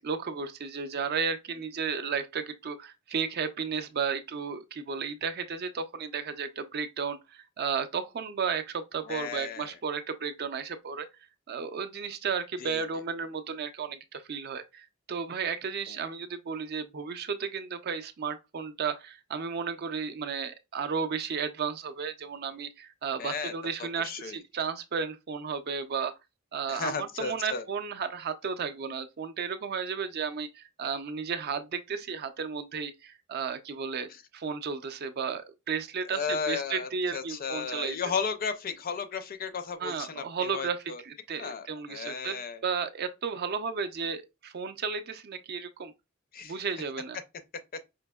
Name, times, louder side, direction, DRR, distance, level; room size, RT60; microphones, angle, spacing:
voice 1, 0.0-11.1 11.5-26.1 26.5-38.0 39.8-40.8 41.0-45.9 46.4-47.2, right 6 dB, 50° right, 0.4 m, -33 dB
voice 2, 9.1-9.8 12.6-12.8 15.9-16.0 23.2-23.5 23.8-24.4 26.7-27.7 36.1-41.0 41.4-42.6 46.3-46.6, left 5 dB, 45° left, 0.4 m, -34 dB
5.1 x 2.7 x 2.2 m
head